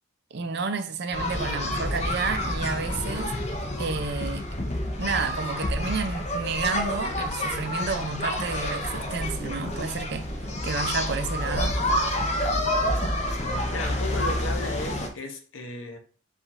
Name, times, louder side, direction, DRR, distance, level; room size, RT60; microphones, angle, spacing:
voice 1, 0.3-3.3 3.8-4.5 5.0-10.3 10.6-11.8, right 4 dB, 55° right, 0.5 m, -30 dB
sound 1, 1.1-15.1, left 1 dB, 30° left, 0.7 m, -28 dB
voice 2, 13.7-16.0, left 2 dB, 70° left, 0.8 m, -34 dB
4.9 x 2.5 x 4.1 m
head